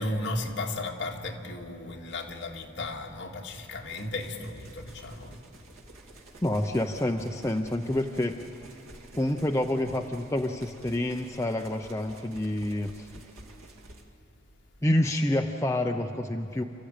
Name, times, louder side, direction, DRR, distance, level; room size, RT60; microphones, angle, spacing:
voice 1, 0.0-5.4, left 2 dB, 55° left, 0 dB, 2.2 m, -35 dB
sound 1, 3.9-14.0, right 2 dB, 80° right, 2.3 m, -51 dB
voice 2, 6.4-8.4 9.2-13.1 14.8-16.6, left 1 dB, 15° left, 3 dB, 0.6 m, -28 dB
29.0 x 14.0 x 8.9 m, 2.7 s
head